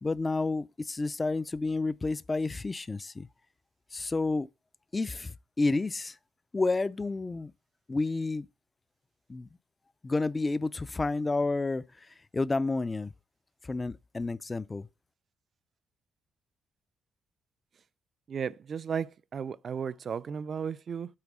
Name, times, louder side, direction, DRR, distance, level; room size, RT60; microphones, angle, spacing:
voice 1, 0.0-3.3 3.9-4.5 4.9-6.2 6.5-7.5 7.9-8.5 9.3-9.5 10.0-11.8 12.3-13.1 13.7-14.9, left 3 dB, 25° left, 0.4 m, -30 dB
voice 2, 18.3-21.1, right 7 dB, 50° right, 0.4 m, -34 dB
8.7 x 4.0 x 6.1 m
cardioid pair, 90°, 0 cm